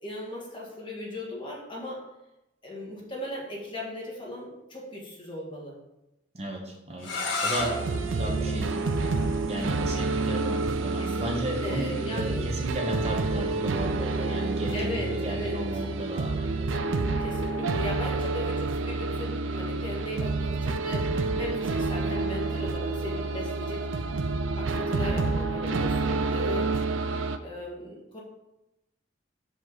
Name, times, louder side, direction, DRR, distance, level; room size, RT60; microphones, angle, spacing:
voice 1, 0.0-2.1 2.6-5.8 8.2-8.5 11.0-12.6 14.7-15.8 17.2-23.9 24.6-26.8 27.4-28.2, left 1 dB, 25° left, -3 dB, 1.5 m, -38 dB
voice 2, 6.3-7.1 7.4-8.8 9.5-16.8, right 1 dB, 35° right, 1 dB, 0.8 m, -34 dB
sound 1, 7.0-12.7, left 2 dB, 80° left, 1.6 m, -36 dB
sound 2, 7.6-27.4, right 3 dB, 85° right, 0.5 m, -28 dB
6.0 x 5.2 x 3.9 m, 0.91 s
head